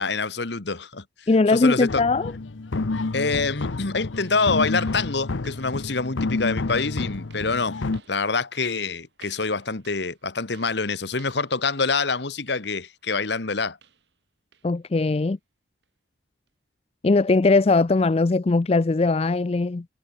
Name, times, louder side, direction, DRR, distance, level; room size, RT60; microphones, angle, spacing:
voice 1, 0.0-2.0 3.1-7.8 8.1-13.8, left 4 dB, 65° left, 1.4 m, -26 dB
voice 2, 1.3-2.3 14.6-15.4 17.0-19.8, left 3 dB, 30° left, 0.4 m, -20 dB
sound 1, 1.9-8.0, left 3 dB, 80° left, 0.8 m, -29 dB
sound 2, 3.6-14.2 14.5-14.8 15.2-15.4 15.8-15.9 16.5-16.6, right 6 dB, 65° right, 5.2 m, -57 dB
head